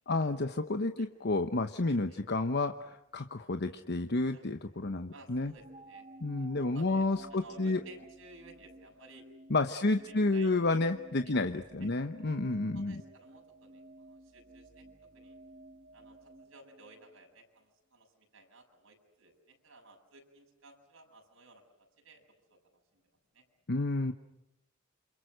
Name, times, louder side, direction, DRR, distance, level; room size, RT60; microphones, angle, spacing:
voice 1, 0.1-5.5 6.2-7.8 9.5-13.0 23.7-24.1, left 2 dB, 55° left, 8 dB, 1.0 m, -30 dB
voice 2, 5.1-6.1 6.4-6.5 6.7-9.3 10.1-10.6 11.0-11.9 12.5-14.9 15.1-15.4 15.9-21.6 22.0-22.2 22.5-22.6 22.9-23.0 23.3-23.4, right 2 dB, 75° right, 2 dB, 7.2 m, -56 dB
sound 1, 5.3-17.4, right 2 dB, 35° right, 1.9 m, -54 dB
29.0 x 27.5 x 6.4 m, 0.89 s
head